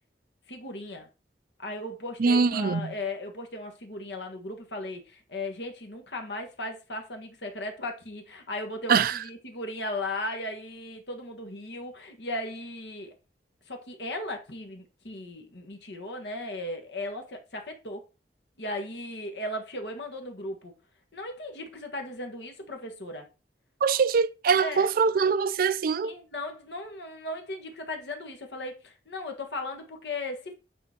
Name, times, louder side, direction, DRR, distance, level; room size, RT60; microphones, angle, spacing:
voice 1, 0.5-1.1 1.6-13.1 13.7-18.0 18.6-20.7 21.1-23.3 24.6-24.9 26.0-30.5, left 1 dB, 75° left, 1.6 m, -36 dB
voice 2, 2.2-2.9 8.9-9.2 23.8-26.1, right 5 dB, 55° right, 0.4 m, -23 dB
9.1 x 3.9 x 4.5 m
head